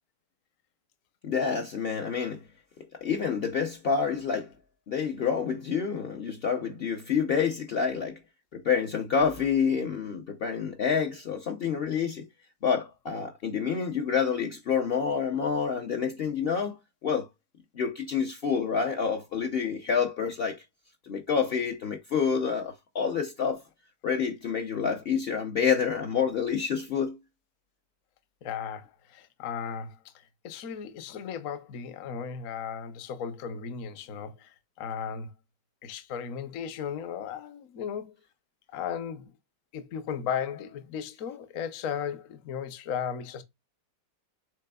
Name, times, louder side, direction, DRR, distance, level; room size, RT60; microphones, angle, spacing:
voice 1, 1.2-2.4 3.0-4.5 4.9-8.2 8.5-12.3 12.6-16.8 17.0-17.3 17.7-20.6 21.0-23.6 24.0-27.2, left 6 dB, 75° left, 0.5 m, -28 dB
voice 2, 28.4-35.3 35.8-38.1 38.7-39.3 39.7-43.4, left 7 dB, 60° left, 1.0 m, -36 dB
6.7 x 3.4 x 2.2 m
omnidirectional pair, 1.9 m